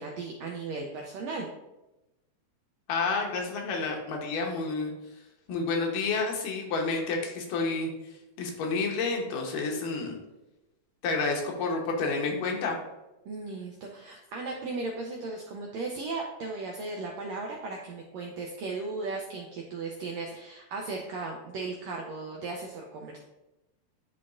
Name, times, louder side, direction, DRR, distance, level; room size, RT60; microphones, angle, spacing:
voice 1, 0.0-1.5 13.3-23.2, right 3 dB, 90° right, 1 dB, 1.5 m, -36 dB
voice 2, 2.9-4.9 5.5-7.9 8.4-10.2 11.0-12.8, left 4 dB, 90° left, 1 dB, 2.6 m, -29 dB
10.0 x 3.9 x 2.5 m, 1.0 s
omnidirectional pair, 3.8 m